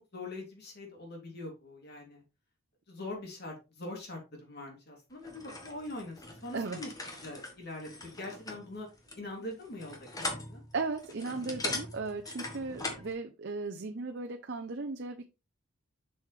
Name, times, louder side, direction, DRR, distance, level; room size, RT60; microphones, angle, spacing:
voice 1, 0.1-2.2 2.9-6.9 7.2-8.9 9.1-10.6, left 2 dB, 50° left, 1 dB, 3.1 m, -43 dB
sound 1, 5.2-13.1, left 2 dB, 15° left, 1.3 m, -41 dB
voice 2, 10.7-15.3, right 3 dB, 50° right, 4 dB, 0.6 m, -36 dB
6.9 x 6.3 x 3.3 m, 0.27 s
head